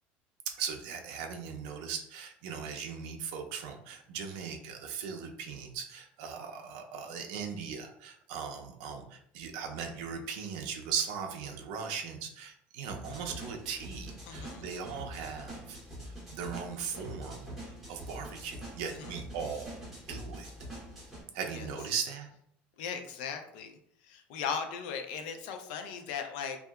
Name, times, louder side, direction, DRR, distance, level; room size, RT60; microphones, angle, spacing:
voice 1, 0.6-15.8 16.3-17.5 17.9-19.8 20.1-20.5 21.3-22.3, right 6 dB, 70° right, 3 dB, 0.4 m, -38 dB
sound 1, 12.9-21.2, right 1 dB, 5° right, 1.0 m, -45 dB
voice 2, 14.3-14.6 19.0-19.1 21.5-21.7 22.8-23.7 24.1-26.6, left 6 dB, 75° left, 6 dB, 0.4 m, -37 dB
2.7 x 2.3 x 2.2 m, 0.70 s
cardioid pair, 180°, 5 cm